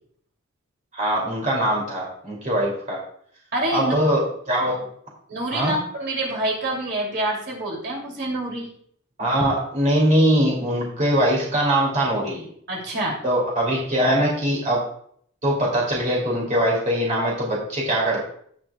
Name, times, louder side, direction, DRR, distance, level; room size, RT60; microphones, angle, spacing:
voice 1, 0.9-3.0 3.7-4.9 5.5-5.8 9.2-12.5 13.2-14.8 15.4-18.2, equal, 35° right, -3 dB, 2.6 m, -22 dB
voice 2, 3.5-3.9 5.3-8.7 12.7-13.2, right 1 dB, 55° right, -1 dB, 2.7 m, -26 dB
17.0 x 6.2 x 2.3 m, 0.62 s
head